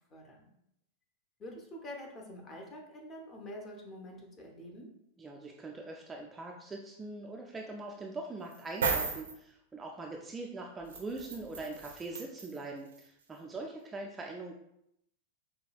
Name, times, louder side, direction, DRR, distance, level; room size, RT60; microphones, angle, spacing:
voice 1, 0.1-0.5 1.4-4.9, left 1 dB, 25° left, 0 dB, 0.8 m, -46 dB
voice 2, 5.2-14.5, right 2 dB, 15° right, 0 dB, 0.4 m, -42 dB
sound 1, 8.5-9.3 10.9-12.6 13.0-13.1, right 5 dB, 65° right, 0.5 m, -34 dB
4.8 x 2.3 x 2.5 m, 0.77 s
figure-of-eight pair, 90°, 0 cm